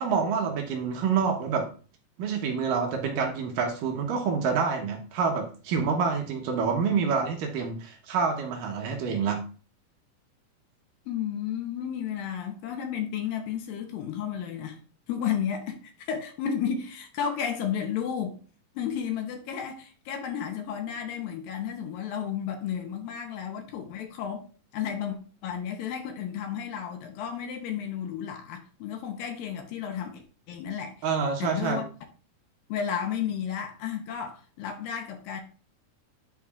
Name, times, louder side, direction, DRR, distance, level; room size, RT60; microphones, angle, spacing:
voice 1, 0.0-1.7 2.2-9.5 31.0-31.8, right 5 dB, 70° right, 2.5 m, -27 dB
voice 2, 11.1-14.8 15.1-18.4 18.8-24.5 24.7-25.2 25.4-30.9 31.4-31.9 32.7-35.4, left 8 dB, 80° left, 2.4 m, -32 dB
10.5 x 4.7 x 2.4 m
omnidirectional pair, 4.3 m